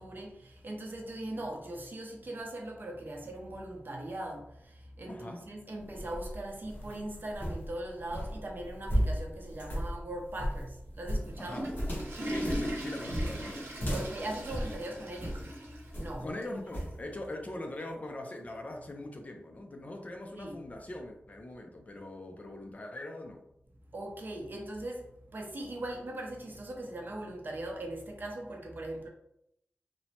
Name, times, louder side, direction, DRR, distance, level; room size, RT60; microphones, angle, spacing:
voice 1, 0.0-11.5 13.9-15.5 16.0-16.3 20.3-20.6 23.9-29.1, right 1 dB, 50° right, 0 dB, 0.6 m, -40 dB
voice 2, 5.1-5.5 11.4-11.7 12.3-13.6 16.2-23.4, left 1 dB, 35° left, 3 dB, 0.4 m, -41 dB
sound 1, 5.8-15.5 15.9-16.3 16.7-17.0, equal, 50° left, 1.0 m, -35 dB
Water / Toilet flush, 11.1-16.1 16.4-16.5 17.2-17.3 18.6-18.7, equal, 90° right, 0.7 m, -39 dB
2.9 x 2.1 x 2.7 m, 0.78 s
wide cardioid pair, 100°, 4 cm